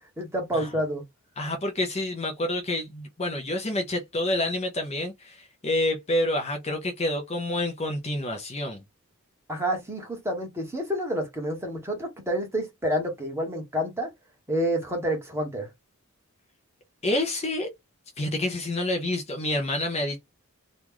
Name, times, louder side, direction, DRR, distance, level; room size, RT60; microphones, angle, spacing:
voice 1, 0.2-1.0 9.5-14.1 14.5-15.7, equal, 10° right, 1.2 m, -28 dB
voice 2, 1.4-8.8 17.0-17.7 18.2-20.2, left 1 dB, 30° left, 0.6 m, -28 dB
3.0 x 2.4 x 3.7 m
head